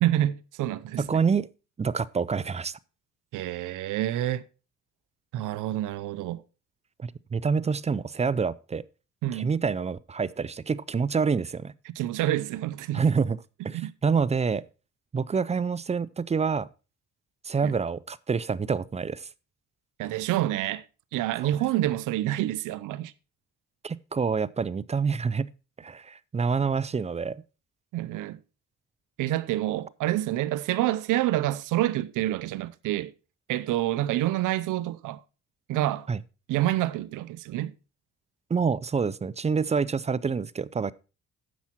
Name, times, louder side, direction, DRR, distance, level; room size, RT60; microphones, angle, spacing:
voice 1, 0.0-1.2 3.3-4.5 5.3-6.4 9.2-9.5 11.9-13.0 13.7-13.9 17.6-17.7 20.0-20.8 21.1-23.1 27.9-28.4 29.2-33.1 33.5-35.2 35.7-36.1 36.5-37.7, right 14 dB, 85° right, 0.7 m, -27 dB
voice 2, 1.0-1.5 1.8-2.8 7.0-8.8 9.3-11.7 12.9-13.4 13.6-14.7 15.1-16.7 17.4-19.3 21.4-21.5 23.8-25.5 25.8-27.4 36.1-36.2 38.5-40.9, right 5 dB, 20° right, 0.5 m, -27 dB
10.0 x 7.2 x 4.4 m
cardioid pair, 90°, 30 cm